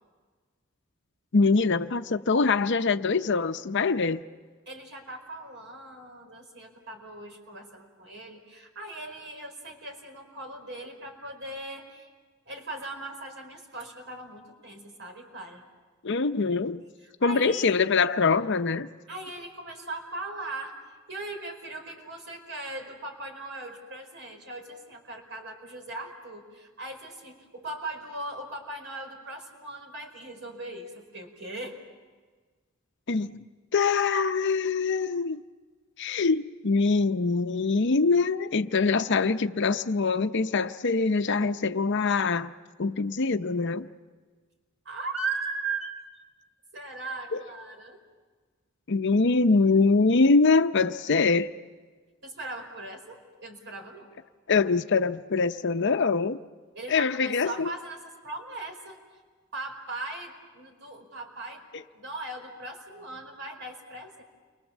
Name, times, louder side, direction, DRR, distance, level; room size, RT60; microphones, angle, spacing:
voice 1, 1.3-4.2 16.0-16.8 17.2-18.9 33.1-33.4 33.7-35.4 36.0-42.5 42.8-43.9 47.3-47.4 48.9-51.5 54.5-56.4 56.9-57.7, left 4 dB, 60° left, 0.7 m, -24 dB
voice 2, 4.6-12.1 12.4-15.6 17.0-17.7 19.1-31.8 44.8-45.9 46.7-48.0 52.2-54.1 56.7-59.0 59.5-61.6 61.9-64.2, right 2 dB, 60° right, 4.9 m, -39 dB
29.5 x 24.0 x 7.3 m
head